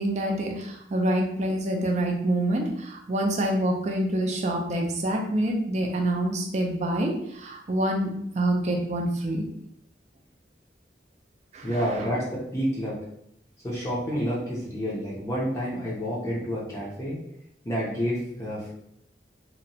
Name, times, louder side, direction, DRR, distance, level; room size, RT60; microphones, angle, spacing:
voice 1, 0.0-9.5 11.5-12.1, right 1 dB, 40° right, 2 dB, 0.4 m, -26 dB
voice 2, 11.6-13.0 13.6-17.2 17.6-18.7, equal, 15° left, -6 dB, 0.5 m, -29 dB
2.8 x 2.1 x 2.7 m, 0.74 s
head